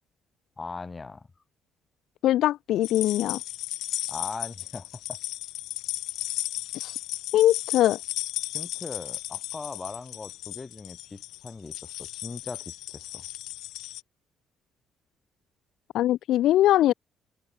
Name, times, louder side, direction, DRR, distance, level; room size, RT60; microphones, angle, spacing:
voice 1, 0.6-1.3 4.1-5.2 8.5-13.2, left 4 dB, 20° left, 2.2 m, -40 dB
voice 2, 2.2-3.4 6.7-6.9 7.3-8.0 15.9-16.9, left 13 dB, 70° left, 0.8 m, -22 dB
sound 1, 2.8-14.0, left 16 dB, 90° left, 3.5 m, -35 dB
open air
cardioid pair, 145°, 0 cm